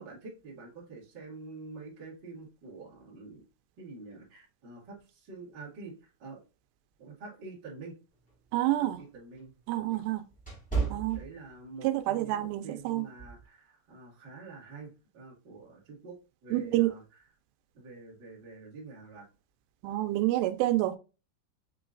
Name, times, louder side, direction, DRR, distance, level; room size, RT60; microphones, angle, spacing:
voice 1, 0.0-3.4 3.8-6.4 7.0-8.0 8.9-10.0 10.8-16.2 16.4-17.0 17.7-19.3, right 3 dB, 35° right, 1.9 m, -47 dB
sound 1, 8.2-11.9 12.3-12.6 13.2-13.5, right 5 dB, 5° left, 1.2 m, -35 dB
voice 2, 8.5-9.0 9.7-10.2 10.9-11.2 11.8-13.1 16.5-16.9 19.8-21.0, right 16 dB, 90° right, 2.8 m, -28 dB
6.4 x 3.1 x 2.5 m
omnidirectional pair, 4.8 m